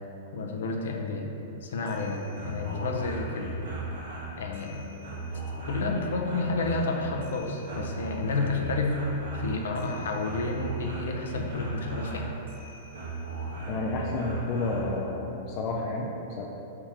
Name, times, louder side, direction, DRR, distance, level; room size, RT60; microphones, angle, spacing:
voice 1, 0.3-1.3 1.6-3.5 4.4-4.8 5.7-9.0 9.3-12.3, left 3 dB, 90° left, 1 dB, 0.6 m, -30 dB
sound 1, 1.7-15.0, right 2 dB, 80° right, 1.2 m, -37 dB
voice 2, 13.7-16.5, left 2 dB, 30° left, -2 dB, 0.3 m, -30 dB
3.6 x 2.8 x 4.7 m, 3.0 s
supercardioid pair, 170°, 0 cm